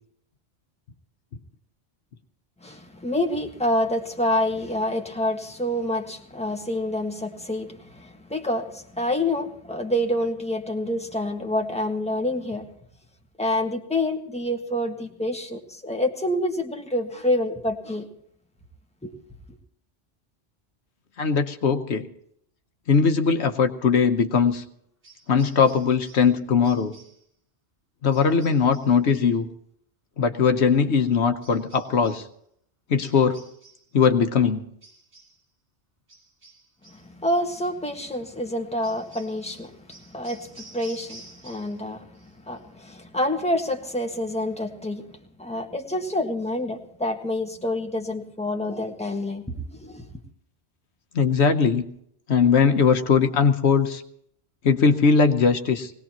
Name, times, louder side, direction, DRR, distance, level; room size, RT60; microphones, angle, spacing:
voice 1, 2.6-12.7 13.4-18.1 19.0-19.1 36.9-42.2 42.5-50.0, left 1 dB, 5° left, 2 dB, 1.6 m, -27 dB
voice 2, 21.2-22.1 22.9-24.6 25.3-27.0 28.0-29.5 30.2-32.3 32.9-33.4 33.9-34.6 51.1-51.8 52.3-54.0 54.6-55.9, left 5 dB, 75° left, 7 dB, 1.2 m, -20 dB
sound 1, 25.0-26.4 26.6-27.3 28.1-29.0 31.4-32.3 33.0-33.9 34.8-35.4 36.1-37.1 37.5-37.8 38.8-41.9 42.1-42.6, right 2 dB, 80° right, 3.5 m, -50 dB
21.0 x 18.5 x 3.0 m, 0.69 s
omnidirectional pair, 1.1 m